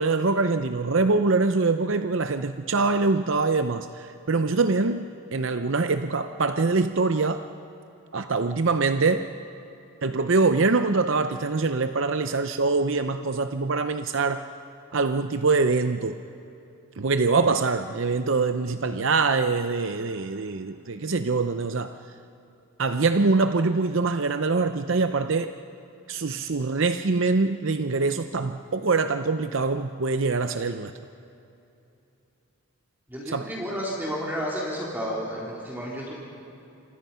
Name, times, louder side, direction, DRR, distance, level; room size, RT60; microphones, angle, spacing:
voice 1, 0.0-7.4 8.1-9.3 10.0-14.5 14.9-16.2 17.0-21.9 22.8-25.5 26.1-30.9 33.3-33.5, right 3 dB, 55° right, 9 dB, 0.6 m, -24 dB
voice 2, 33.1-36.1, equal, 10° right, -4 dB, 3.7 m, -31 dB
29.0 x 26.0 x 5.7 m, 2.8 s
head